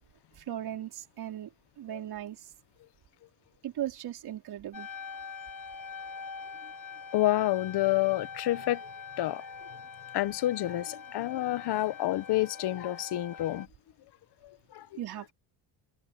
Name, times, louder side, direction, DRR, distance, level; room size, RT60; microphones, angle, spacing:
voice 1, 0.4-1.5 1.8-2.5 3.6-4.9 15.0-15.3, right 12 dB, 60° right, 4.7 m, -37 dB
sound 1, 4.7-13.7, left 5 dB, 45° left, 4.7 m, -44 dB
voice 2, 7.1-8.8 9.2-9.5 10.1-13.7 14.4-14.9, left 15 dB, 65° left, 1.2 m, -29 dB
cardioid pair, 105°, 43 cm